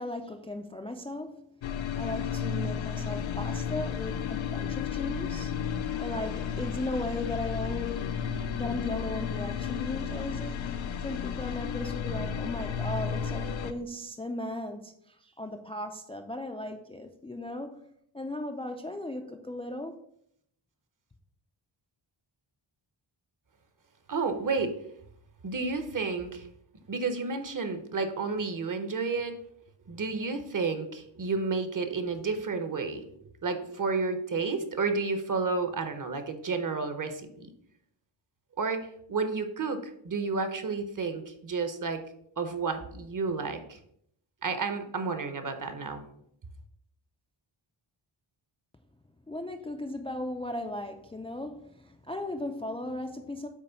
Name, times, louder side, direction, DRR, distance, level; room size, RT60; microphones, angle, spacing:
voice 1, 0.0-1.5 2.0-5.5 5.8-10.8 11.0-17.8 18.1-20.0 49.3-53.5, left 1 dB, 15° left, 4 dB, 0.3 m, -37 dB
sound 1, 1.6-13.7, left 7 dB, 65° left, 0.6 m, -33 dB
voice 2, 24.1-24.7 25.4-26.5 26.9-29.4 29.9-33.0 33.4-37.5 38.6-42.0 42.4-43.8 44.4-46.0, right 4 dB, 40° right, 8 dB, 0.8 m, -31 dB
8.4 x 3.1 x 5.6 m, 0.71 s
wide cardioid pair, 165°, 50 cm